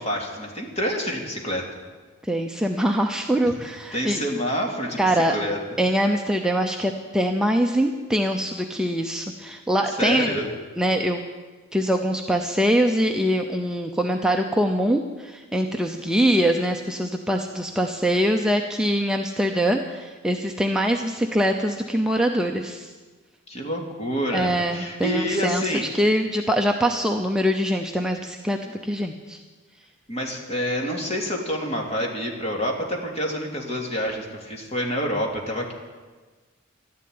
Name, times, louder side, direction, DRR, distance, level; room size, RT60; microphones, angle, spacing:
voice 1, 0.0-1.7 3.4-3.5 3.9-5.6 9.9-10.4 23.5-25.8 30.1-35.7, equal, 30° left, 0 dB, 2.7 m, -27 dB
voice 2, 2.2-4.2 5.0-5.4 5.8-10.3 10.8-11.2 11.7-22.9 24.3-25.6 25.9-29.4, equal, 5° right, 2 dB, 0.7 m, -23 dB
12.5 x 11.0 x 9.6 m, 1.4 s
head